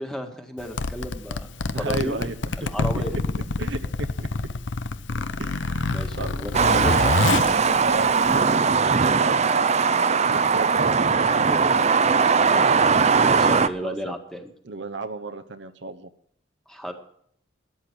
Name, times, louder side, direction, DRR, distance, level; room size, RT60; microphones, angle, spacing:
voice 1, 0.0-2.3 2.6-3.1 5.9-7.3 11.2-11.7 12.4-12.7 13.2-14.5 16.7-16.9, equal, 5° left, 4 dB, 1.7 m, -33 dB
Zipper (clothing), 0.6-8.6, left 3 dB, 70° left, 0.7 m, -27 dB
voice 2, 1.6-2.4 2.6-2.7 2.9-3.2 3.6-4.3 5.4-6.3 6.7-7.0 7.6-11.7 13.8-14.2 14.6-16.1, right 3 dB, 65° right, 9 dB, 0.9 m, -34 dB
sound 1, 6.5-13.7, right 5 dB, 35° right, 0.6 m, -19 dB
13.0 x 10.5 x 6.0 m, 0.65 s
head